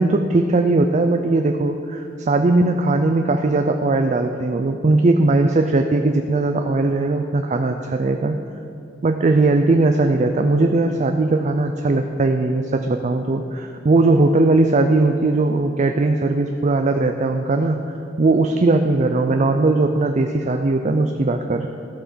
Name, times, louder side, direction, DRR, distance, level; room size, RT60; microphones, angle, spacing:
voice 1, 0.0-8.4 9.0-17.8 18.2-21.7, right 2 dB, 40° right, 6 dB, 0.4 m, -19 dB
15.0 x 5.7 x 6.3 m, 2.6 s
head